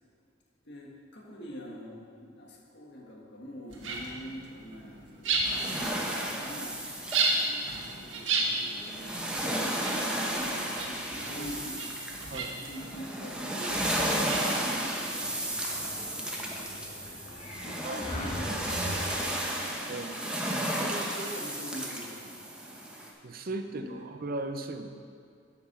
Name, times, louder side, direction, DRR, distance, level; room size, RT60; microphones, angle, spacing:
voice 1, 0.6-7.0 7.3-13.9 14.2-19.9 20.2-22.8 23.7-24.1, equal, 60° left, -2 dB, 1.7 m, -46 dB
sound 1, 3.7-15.4, right 3 dB, 85° right, 1.4 m, -35 dB
sound 2, 5.4-23.1, right 1 dB, 5° right, 1.0 m, -33 dB
Sliding door, 15.0-19.6, left 1 dB, 35° left, 1.7 m, -40 dB
voice 2, 17.8-18.6 19.9-20.2 23.2-24.9, right 2 dB, 50° right, 6 dB, 0.6 m, -37 dB
10.0 x 5.9 x 6.1 m, 2.3 s
head